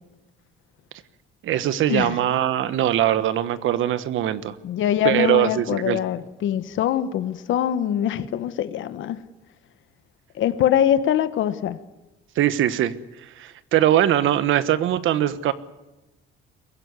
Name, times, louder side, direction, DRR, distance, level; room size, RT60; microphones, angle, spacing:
voice 1, 1.4-4.5 5.0-6.0 12.4-12.9 13.4-15.5, right 12 dB, 70° right, 13 dB, 1.3 m, -21 dB
voice 2, 4.6-9.2 10.3-11.8, left 10 dB, 65° left, 12 dB, 1.3 m, -23 dB
22.5 x 15.5 x 9.7 m, 0.99 s
cardioid pair, 130°, 21 cm